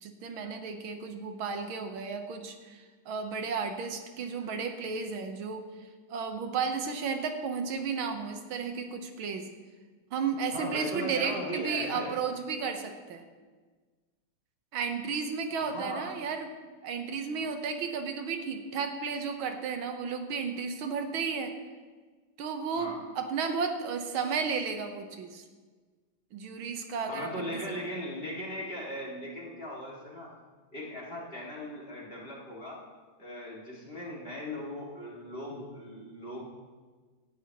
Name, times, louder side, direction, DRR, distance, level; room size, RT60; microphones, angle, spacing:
voice 1, 0.0-5.6 6.1-9.5 10.1-13.2 14.7-16.5 16.8-21.5 22.4-25.4 26.3-27.5, right 5 dB, 80° right, 6 dB, 1.8 m, -33 dB
voice 2, 10.5-12.2 15.6-16.2 17.3-17.5 22.7-23.0 27.1-30.3 30.7-32.9 33.2-36.4, left 1 dB, 30° left, -4 dB, 2.2 m, -38 dB
17.5 x 11.0 x 3.0 m, 1.4 s
omnidirectional pair, 2.2 m